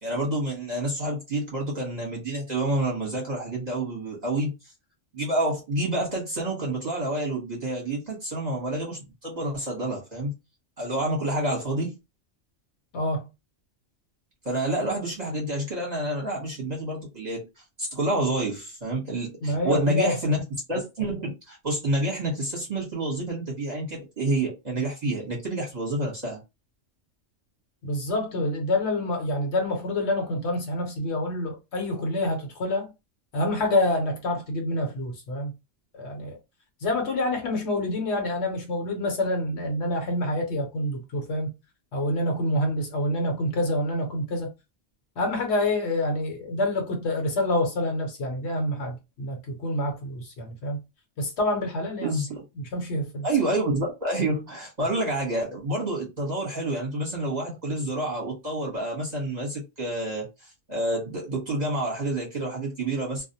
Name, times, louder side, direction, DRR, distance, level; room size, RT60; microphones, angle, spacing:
voice 1, 0.0-4.5 5.1-10.3 10.8-12.0 14.4-17.5 17.8-20.4 20.7-26.4 52.0-52.4 53.2-60.3 60.7-63.2, right 1 dB, 40° right, 0.9 m, -28 dB
voice 2, 12.9-13.3 19.4-20.2 27.8-32.9 33.3-35.5 35.9-36.4 36.8-41.5 41.9-44.5 45.2-50.8 51.2-52.2 52.7-53.3, left 1 dB, 65° left, 1.0 m, -27 dB
2.3 x 2.0 x 2.6 m
omnidirectional pair, 1.2 m